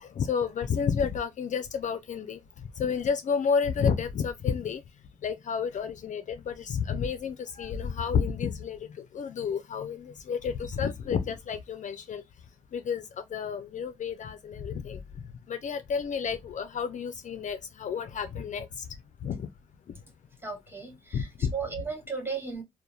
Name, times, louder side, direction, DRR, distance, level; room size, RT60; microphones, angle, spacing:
voice 1, 0.0-2.4 2.8-4.8 5.2-8.9 9.1-12.2 12.7-13.0 13.3-15.0 15.5-18.8 19.2-19.5 21.1-21.5, left 6 dB, 50° left, 0.4 m, -30 dB
voice 2, 20.4-22.6, right 5 dB, 15° right, 0.9 m, -35 dB
2.8 x 2.1 x 2.3 m
cardioid pair, 65°, 16 cm